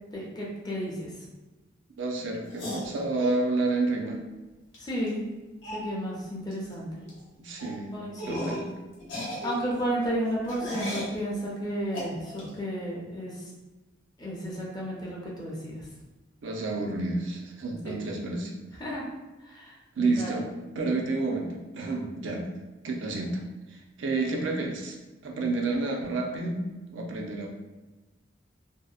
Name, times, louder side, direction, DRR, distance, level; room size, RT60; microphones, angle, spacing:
voice 1, 0.1-1.1 4.8-5.2 5.7-6.9 7.9-8.5 9.4-13.3 14.2-15.8 17.8-17.9 18.8-19.1 19.4-20.3, equal, 20° left, -4 dB, 0.5 m, -32 dB
voice 2, 2.0-4.2 7.4-7.9 8.3-8.7 16.4-18.5 20.0-20.5 20.8-22.5 22.8-23.4 23.7-25.0 25.2-26.6 26.9-27.5, right 3 dB, 75° right, 0 dB, 0.5 m, -29 dB
sound 1, 2.5-3.4 4.7-4.8 5.1-5.2 5.6-5.9 6.5-6.7 7.0-7.2 7.6-7.7 8.2-8.7 9.0-11.2 11.9-12.5, left 1 dB, 80° left, 0.8 m, -35 dB
2.7 x 2.0 x 2.3 m, 1.1 s
head